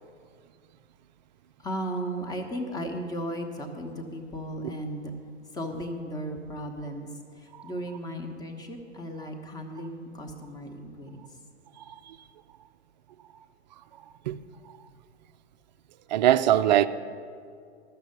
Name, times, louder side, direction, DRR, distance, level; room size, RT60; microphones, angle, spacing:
voice 1, 1.6-5.1 5.5-7.1 7.3-11.3, equal, 10° left, 1.1 m, -35 dB
voice 2, 11.8-12.2 14.3-14.4 16.1-16.9, right 12 dB, 40° right, 0.5 m, -22 dB
13.0 x 6.8 x 8.2 m
figure-of-eight pair, 105°, 35 cm